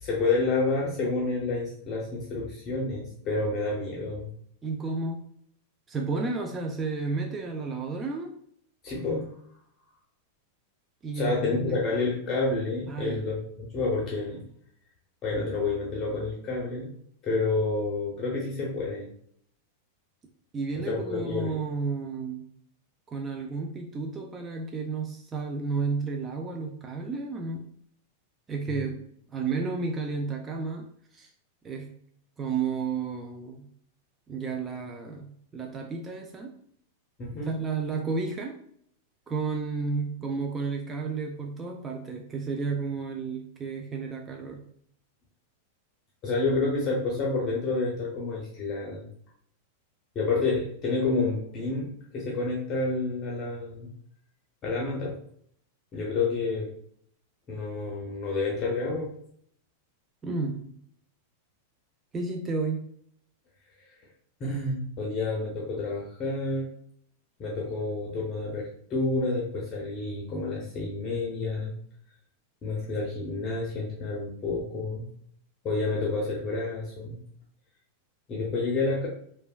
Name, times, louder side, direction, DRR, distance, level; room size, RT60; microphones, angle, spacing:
voice 1, 0.0-4.3 8.8-9.3 11.1-14.4 15.2-16.9 17.2-19.1 20.9-21.6 28.7-28.9 37.2-37.5 46.2-49.0 50.1-53.9 54.6-55.2 55.9-56.7 57.5-59.2 64.4-66.7 67.4-71.7 72.6-75.1 75.6-77.2 78.3-79.1, left 3 dB, 35° left, -3 dB, 0.6 m, -29 dB
voice 2, 4.6-5.2 5.9-8.3 11.0-11.8 12.9-13.2 20.5-22.4 23.1-27.7 28.5-29.0 29.3-30.9 31.1-31.3 31.6-31.9 32.4-33.7 34.3-36.5 37.3-38.6 39.3-44.6 60.2-60.7 62.1-62.9, right 4 dB, 20° right, 2 dB, 0.3 m, -32 dB
3.1 x 2.1 x 2.3 m, 0.66 s
hypercardioid pair, 125°, 0 cm